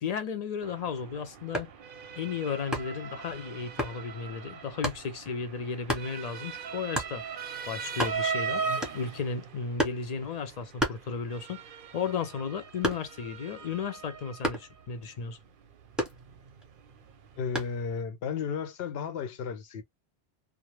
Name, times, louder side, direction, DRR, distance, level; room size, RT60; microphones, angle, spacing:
voice 1, 0.0-1.7 2.2-8.6 8.9-11.6 11.9-15.4, left 6 dB, 55° left, 0.5 m, -34 dB
Motor vehicle (road) / Siren, 0.6-18.0, right 5 dB, 60° right, 0.7 m, -40 dB
sound 1, 1.4-1.8 2.7-3.1 3.8-4.0 4.8-5.1 5.9-6.1 6.9-7.2 7.6-7.7 7.9-8.4 8.8-9.2 9.8-10.1 10.8-11.5 11.9-13.3 14.4-14.8 16.0-16.6 17.6-17.8, equal, ahead, 0.7 m, -32 dB
voice 2, 17.4-19.8, left 6 dB, 70° left, 0.8 m, -33 dB
2.3 x 2.0 x 3.0 m
omnidirectional pair, 1.1 m